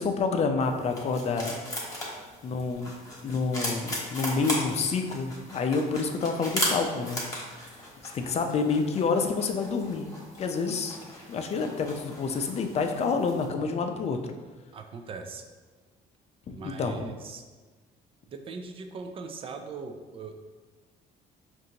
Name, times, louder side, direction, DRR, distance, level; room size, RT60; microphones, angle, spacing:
voice 1, 0.0-1.6 2.4-2.9 3.2-7.2 8.1-10.1 10.4-11.0 11.3-14.2 16.5-17.1, left 4 dB, 40° left, 5 dB, 0.4 m, -28 dB
sound 1, 0.6-13.5, left 1 dB, 20° left, 1.1 m, -37 dB
voice 2, 14.7-15.4 16.5-17.4 18.3-20.3, right 4 dB, 35° right, 5 dB, 0.4 m, -40 dB
5.0 x 2.6 x 2.8 m, 1.3 s
cardioid pair, 110°, 17 cm